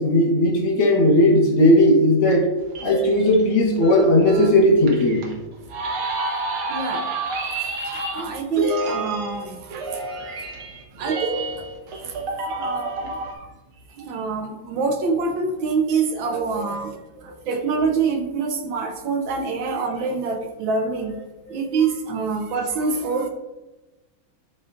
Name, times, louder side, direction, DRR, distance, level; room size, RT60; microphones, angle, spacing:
voice 1, 0.0-2.5 2.8-5.3 21.5-21.6, left 1 dB, 70° left, 0 dB, 2.1 m, -17 dB
sound 1, 2.3-13.3, right 2 dB, 85° right, 1.9 m, -29 dB
voice 2, 6.7-7.0 7.8-10.0 11.0-11.7 12.0-13.5 13.9-21.2 21.5-23.3, right 4 dB, 70° right, 4 dB, 1.4 m, -26 dB
11.5 x 4.0 x 2.5 m, 1.1 s
omnidirectional pair, 2.3 m